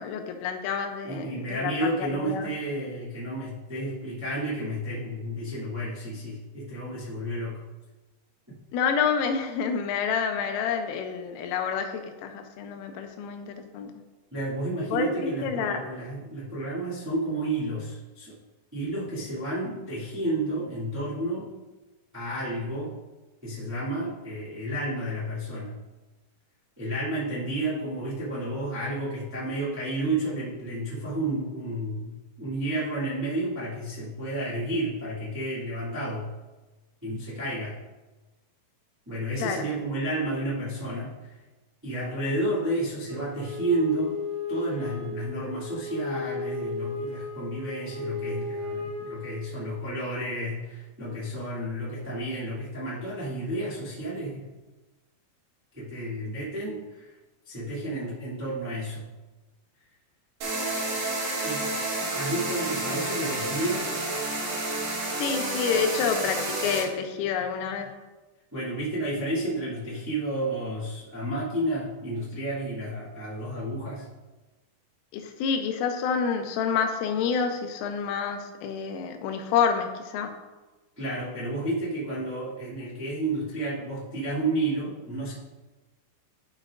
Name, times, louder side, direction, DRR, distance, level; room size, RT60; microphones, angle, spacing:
voice 1, 0.0-2.5 8.7-13.9 14.9-15.8 39.4-39.7 65.2-67.9 75.1-80.3, left 6 dB, 85° left, 5 dB, 3.2 m, -28 dB
voice 2, 1.0-7.6 8.5-8.6 14.3-18.3 18.7-21.5 22.1-22.9 23.4-25.8 26.8-36.3 37.0-37.8 39.0-41.4 41.8-44.2 44.5-54.4 55.7-57.1 57.4-59.1 61.4-61.7 62.1-63.9 68.5-74.1 80.9-85.3, right 1 dB, 25° right, -11 dB, 0.3 m, -31 dB
Wind instrument woodwind instrument, 43.1-49.9, left 2 dB, 85° right, 1.9 m, -35 dB
sound 1, 60.4-66.8, right 2 dB, 60° right, 3.9 m, -30 dB
11.5 x 6.2 x 2.6 m, 1.2 s
omnidirectional pair, 5.8 m